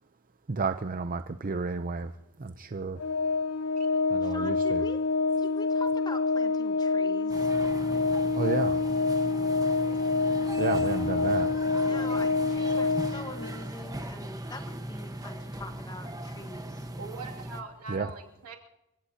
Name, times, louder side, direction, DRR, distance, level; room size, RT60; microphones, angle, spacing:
voice 1, 0.5-2.1 2.4-3.0 4.1-4.8 8.3-8.8 10.6-11.5 17.9-18.1, right 4 dB, 40° right, 9 dB, 0.6 m, -31 dB
Organ, 3.0-13.7, left 3 dB, 85° left, 0.7 m, -27 dB
voice 2, 4.2-5.0 5.4-7.5 11.8-16.9, left 1 dB, 20° left, 7 dB, 1.4 m, -43 dB
sound 1, 7.3-17.6, right 1 dB, 15° right, 1.2 m, -39 dB
voice 3, 17.0-18.6, right 4 dB, 85° right, 1 dB, 2.6 m, -42 dB
28.5 x 16.5 x 2.9 m, 0.92 s
head